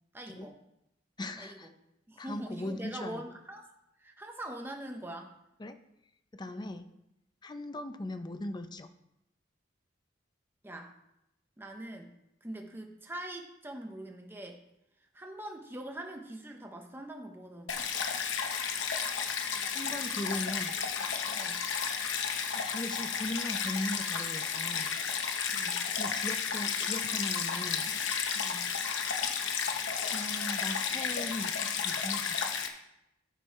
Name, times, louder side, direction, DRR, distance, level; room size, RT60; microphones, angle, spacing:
voice 1, 0.1-0.6 1.3-1.7 2.1-3.6 4.0-5.3 6.4-6.8 10.6-10.9 11.6-14.6 15.1-17.9 20.1-20.2 21.3-21.6 25.5-25.9 28.3-28.7, right 1 dB, 10° right, 2 dB, 0.8 m, -43 dB
voice 2, 1.2-1.7 2.2-3.2 5.6-5.8 6.3-6.9 7.4-8.9 19.7-20.8 22.5-25.0 26.0-27.9 30.1-32.4, left 1 dB, 25° left, 9 dB, 0.5 m, -39 dB
Stream, 17.7-32.7, left 6 dB, 75° left, 0.9 m, -32 dB
9.2 x 6.1 x 4.6 m, 0.85 s
head